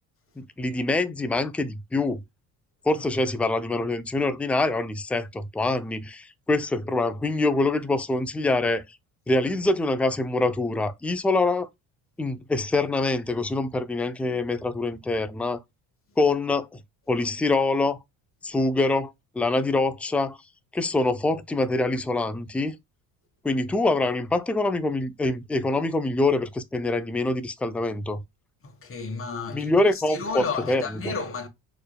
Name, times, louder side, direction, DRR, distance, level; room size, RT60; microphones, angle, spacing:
voice 1, 0.4-2.2 2.8-8.8 9.3-11.7 12.2-15.6 16.2-16.8 17.1-18.0 18.4-20.4 20.7-22.8 23.4-28.2 29.5-30.8, left 2 dB, 5° left, 0.4 m, -25 dB
voice 2, 2.9-3.3 28.6-31.5, left 5 dB, 35° left, 1.4 m, -33 dB
4.4 x 3.3 x 2.2 m
cardioid pair, 95°, 39 cm